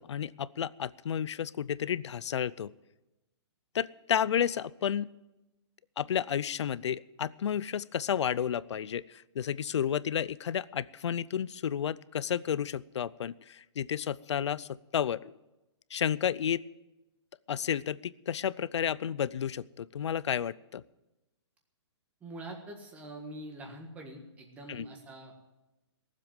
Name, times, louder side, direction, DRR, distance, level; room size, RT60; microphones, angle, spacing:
voice 1, 0.0-2.7 3.7-5.1 6.0-15.3 15.9-16.6 17.5-20.8 24.7-24.8, left 9 dB, 70° left, 19 dB, 0.5 m, -31 dB
voice 2, 22.2-25.4, right 1 dB, 10° right, 2 dB, 1.6 m, -44 dB
17.5 x 7.5 x 9.1 m, 1.0 s
hypercardioid pair, 165°, 15 cm